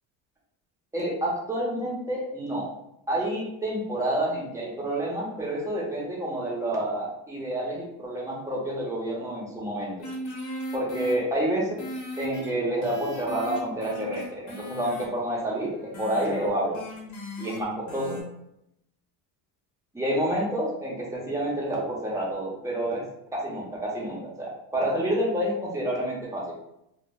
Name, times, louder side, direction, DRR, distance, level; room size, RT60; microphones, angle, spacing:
voice 1, 0.9-2.7 3.1-10.0 10.7-11.8 12.2-16.8 17.4-18.2 19.9-23.0 23.3-26.5, right 1 dB, 5° right, -5 dB, 0.7 m, -29 dB
sound 1, 10.0-11.1 11.8-17.6 17.9-18.2, equal, 40° left, 0.8 m, -38 dB
2.2 x 2.0 x 3.6 m, 0.80 s
cardioid pair, 130°, 43 cm